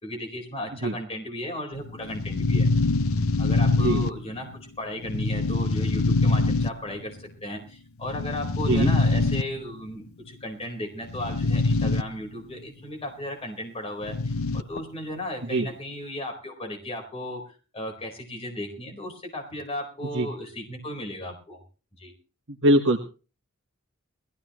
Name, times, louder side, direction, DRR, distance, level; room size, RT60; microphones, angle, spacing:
voice 1, 0.0-2.7 3.4-21.6 22.0-22.1, left 1 dB, 30° left, 2 dB, 4.4 m, -35 dB
sound 1, 1.7-4.6 5.0-7.1 8.0-9.8 11.0-12.0 12.3-12.4 14.0-14.8, left 3 dB, 75° left, 0.7 m, -24 dB
voice 2, 22.6-23.0, right 1 dB, 60° right, 5 dB, 1.3 m, -21 dB
21.5 x 15.5 x 3.1 m, 0.35 s
head